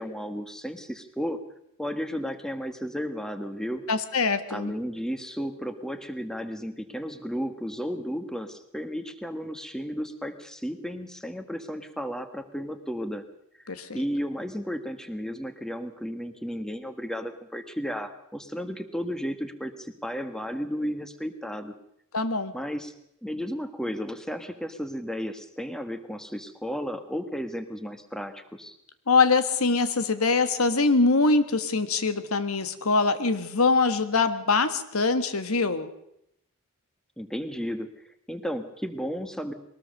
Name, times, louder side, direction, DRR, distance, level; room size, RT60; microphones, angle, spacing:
voice 1, 0.0-1.4 1.8-3.8 4.5-13.2 13.9-21.7 22.5-22.9 23.2-28.7 37.2-37.9 38.3-39.5, equal, 5° left, 9 dB, 1.5 m, -33 dB
voice 2, 3.9-4.7 13.7-14.0 22.1-22.5 29.1-35.9, left 3 dB, 85° left, 11 dB, 1.6 m, -23 dB
22.0 x 19.0 x 6.6 m, 0.76 s
head